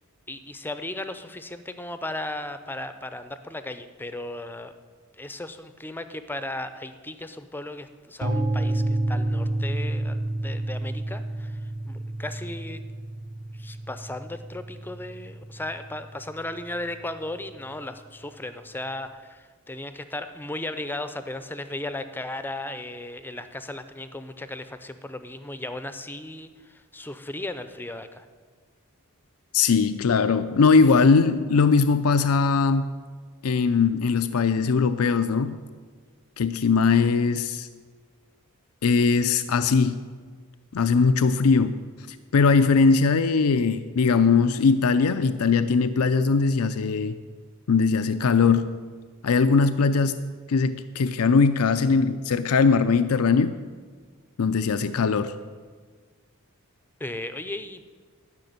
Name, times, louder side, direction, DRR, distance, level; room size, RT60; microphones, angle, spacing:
voice 1, 0.3-4.7 5.2-11.6 11.8-12.8 13.5-28.3 57.0-57.8, left 1 dB, 10° left, 10 dB, 0.5 m, -36 dB
sound 1, 8.2-16.1, right 1 dB, 40° right, 1.6 m, -29 dB
voice 2, 29.5-32.9 33.4-35.6 36.4-37.7 38.8-40.0 40.7-41.8 42.1-47.1 47.7-48.7 49.2-50.1 50.5-53.5 54.4-55.3, left 5 dB, 80° left, 11 dB, 0.5 m, -20 dB
12.0 x 5.9 x 9.3 m, 1.6 s
head